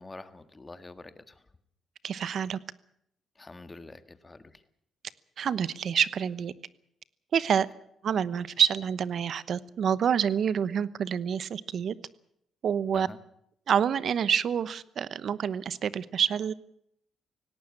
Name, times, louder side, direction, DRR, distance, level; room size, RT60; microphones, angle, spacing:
voice 1, 0.0-1.5 3.4-4.6 12.9-13.2, left 2 dB, 20° left, 11 dB, 1.8 m, -46 dB
voice 2, 2.0-2.6 5.4-6.5 7.3-7.7 8.0-11.9 12.6-13.1 13.7-16.5, right 8 dB, 60° right, 17 dB, 1.0 m, -27 dB
18.0 x 17.5 x 8.8 m, 0.72 s
cardioid pair, 90°, 0 cm